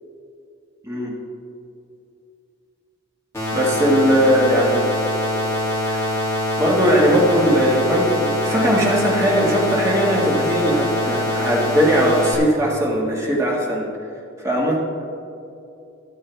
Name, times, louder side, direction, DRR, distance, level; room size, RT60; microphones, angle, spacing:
sound 1, 3.3-12.3, left 1 dB, 15° left, 2.7 m, -23 dB
voice 1, 3.5-5.0 5.8-6.1 6.6-13.9 14.4-14.8, equal, 15° right, -3 dB, 1.9 m, -19 dB
13.5 x 11.0 x 3.5 m, 2.6 s
head